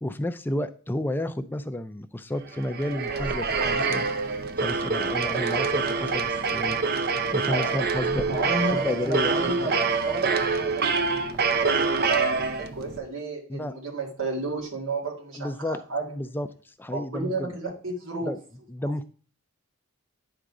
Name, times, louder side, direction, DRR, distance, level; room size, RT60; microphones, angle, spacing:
voice 1, 0.0-4.1 4.6-8.3 8.6-9.7 13.5-13.7 15.4-15.8 16.1-17.6 18.2-18.4 18.7-19.0, left 1 dB, 10° left, 10 dB, 0.4 m, -31 dB
sound 1, 2.5-13.0, right 4 dB, 45° right, 0.6 m, -26 dB
voice 2, 8.2-16.1 16.9-18.3, right 3 dB, 70° right, -2 dB, 2.0 m, -32 dB
10.0 x 3.9 x 4.8 m, 0.41 s
head